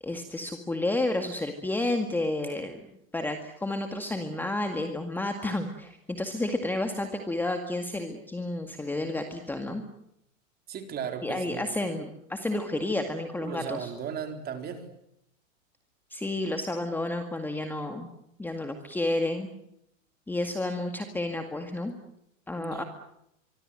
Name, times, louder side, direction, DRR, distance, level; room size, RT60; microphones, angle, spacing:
voice 1, 0.0-2.8 3.1-9.8 11.2-13.9 16.1-18.1 18.4-19.5 20.3-21.9 22.5-22.8, left 2 dB, 5° left, 6 dB, 2.0 m, -31 dB
voice 2, 10.7-11.7 13.4-14.9 22.5-22.8, right 7 dB, 25° right, 6 dB, 4.1 m, -36 dB
24.5 x 23.5 x 7.7 m, 0.77 s
hypercardioid pair, 135°, 40 cm